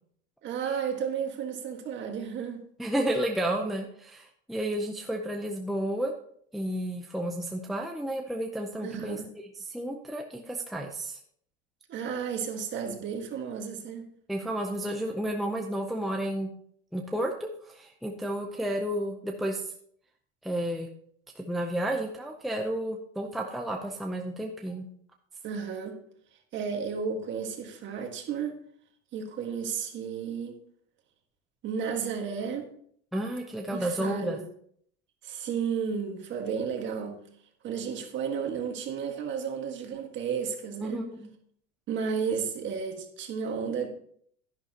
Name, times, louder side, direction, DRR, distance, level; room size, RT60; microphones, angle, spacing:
voice 1, 0.4-2.6 8.8-9.3 11.9-14.1 25.4-26.0 26.5-28.6 29.1-30.5 31.6-32.7 33.7-34.4 35.2-37.2 37.6-41.0 41.9-43.9, right 6 dB, 35° right, 1.6 m, -33 dB
voice 2, 2.8-6.1 6.5-9.2 9.6-11.2 14.3-16.5 16.9-19.7 20.4-20.9 21.4-24.9 33.1-34.4 40.8-41.3, right 1 dB, ahead, 0.6 m, -31 dB
11.0 x 11.0 x 2.9 m
cardioid pair, 155°, 31 cm